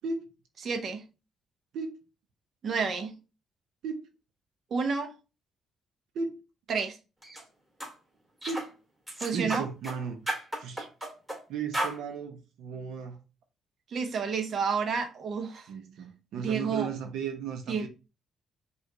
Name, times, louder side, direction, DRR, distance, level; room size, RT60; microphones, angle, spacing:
voice 1, 0.6-1.0 2.6-3.2 4.7-5.1 6.7-7.0 9.2-9.6 13.9-15.7 16.4-16.9 17.7-17.9, right 5 dB, 55° right, 0.8 m, -30 dB
sound 1, 7.2-7.4 7.8-7.9 8.4-8.7 9.1-10.0 10.3-11.4 11.7-12.0, right 1 dB, 10° right, 2.1 m, -33 dB
voice 2, 9.3-10.9 11.5-13.2 15.7-17.9, right 5 dB, 85° right, 0.7 m, -35 dB
5.1 x 2.5 x 3.8 m
cardioid pair, 90°, 0 cm